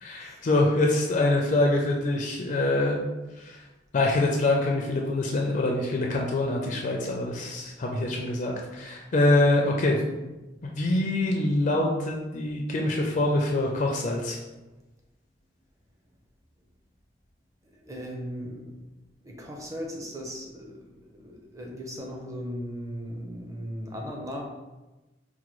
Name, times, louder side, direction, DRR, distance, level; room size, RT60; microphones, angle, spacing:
voice 1, 0.0-3.0 3.4-3.6 3.9-10.0 10.6-14.4, left 2 dB, 45° left, 0 dB, 0.4 m, -25 dB
voice 2, 17.7-18.7 19.2-24.4, equal, 15° right, 0 dB, 0.5 m, -37 dB
4.6 x 2.2 x 3.0 m, 1.1 s
head